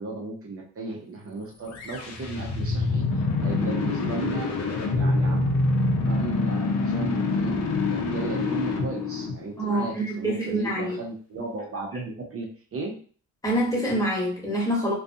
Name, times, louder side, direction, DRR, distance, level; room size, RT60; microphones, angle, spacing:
voice 1, 0.0-4.5 4.9-5.5 6.1-13.0, right 3 dB, 50° right, -1 dB, 0.6 m, -35 dB
sound 1, 1.7-9.8, left 3 dB, 60° left, 0.6 m, -26 dB
voice 2, 9.6-11.0 13.4-14.9, right 1 dB, 10° left, -5 dB, 1.2 m, -26 dB
2.4 x 2.3 x 2.6 m, 0.43 s
cardioid pair, 90°, 30 cm